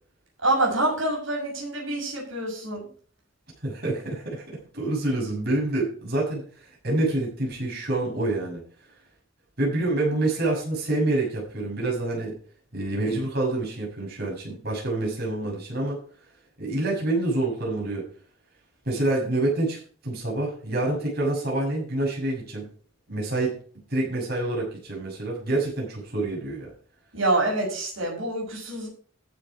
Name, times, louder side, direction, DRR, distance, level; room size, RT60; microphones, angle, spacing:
voice 1, 0.4-2.8 27.1-28.9, right 2 dB, 85° right, -3 dB, 6.4 m, -26 dB
voice 2, 3.6-6.4 6.8-8.6 9.6-12.3 12.7-16.0 16.6-18.0 18.8-22.6 23.1-23.5 23.9-26.7, right 2 dB, 55° right, -3 dB, 6.7 m, -27 dB
14.5 x 7.1 x 4.8 m, 0.44 s
head